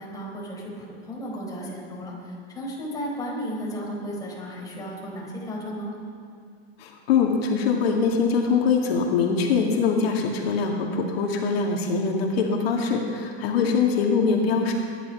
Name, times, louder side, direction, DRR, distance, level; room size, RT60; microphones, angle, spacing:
voice 1, 0.0-5.9 13.6-13.8, equal, 10° left, -3 dB, 4.0 m, -34 dB
voice 2, 6.8-14.7, left 5 dB, 75° left, 0 dB, 2.2 m, -23 dB
21.0 x 11.0 x 5.7 m, 2.4 s
supercardioid pair, 140°, 31 cm